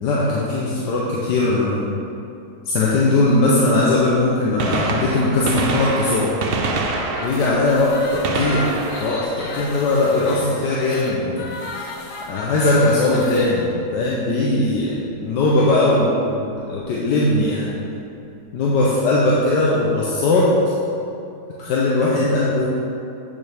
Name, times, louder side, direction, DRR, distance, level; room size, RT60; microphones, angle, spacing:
voice 1, 0.0-1.9 2.7-6.3 7.2-8.7 9.0-11.5 12.3-17.7 18.5-20.5 21.6-22.7, left 2 dB, 85° left, -5 dB, 1.5 m, -19 dB
Gunshot gunfire, 4.6-10.3 12.2-12.4 13.4-13.5 15.1-15.2 16.6-16.7 16.9-17.0, right 3 dB, 70° right, 0.5 m, -27 dB
sound 1, 7.1-13.5, left 3 dB, 60° left, 1.1 m, -34 dB
8.2 x 7.0 x 3.5 m, 2.7 s
omnidirectional pair, 1.8 m